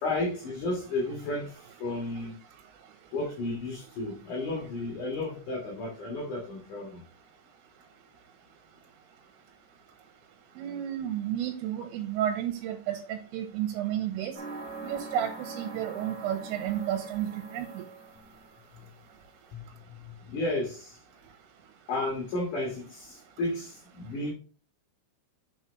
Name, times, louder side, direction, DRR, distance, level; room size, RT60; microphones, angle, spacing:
voice 1, 0.0-2.4 3.1-7.0 19.5-19.6 19.9-21.0 21.9-24.3, left 2 dB, 55° left, -2 dB, 2.6 m, -33 dB
voice 2, 10.6-14.3 14.8-17.9, right 11 dB, 80° right, 5 dB, 3.7 m, -32 dB
sound 1, 14.3-18.7, right 3 dB, 65° right, 1.0 m, -42 dB
7.5 x 6.2 x 3.2 m, 0.37 s
omnidirectional pair, 5.9 m